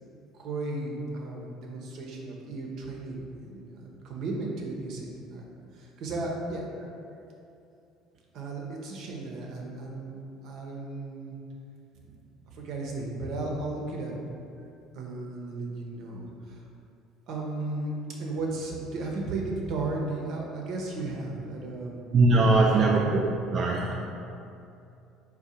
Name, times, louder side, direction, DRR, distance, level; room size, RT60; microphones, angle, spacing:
voice 1, 0.3-6.7 8.3-11.3 12.0-12.1 12.5-14.2 14.9-16.6 17.3-23.1, right 2 dB, 65° right, -1 dB, 0.7 m, -35 dB
voice 2, 22.1-23.9, right 2 dB, 45° right, -1 dB, 0.3 m, -21 dB
3.8 x 2.3 x 4.2 m, 2.7 s
hypercardioid pair, 75°, 0 cm